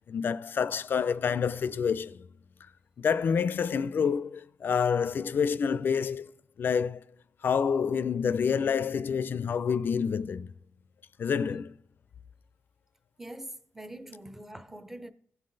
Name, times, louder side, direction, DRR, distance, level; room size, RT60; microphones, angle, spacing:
voice 1, 0.1-2.3 3.0-6.3 6.6-7.0 7.4-10.5 11.2-11.7, left 6 dB, 50° left, 0.4 m, -28 dB
voice 2, 13.2-15.1, right 1 dB, 10° right, 0.6 m, -43 dB
16.0 x 5.6 x 3.9 m
wide cardioid pair, 130°, 4 cm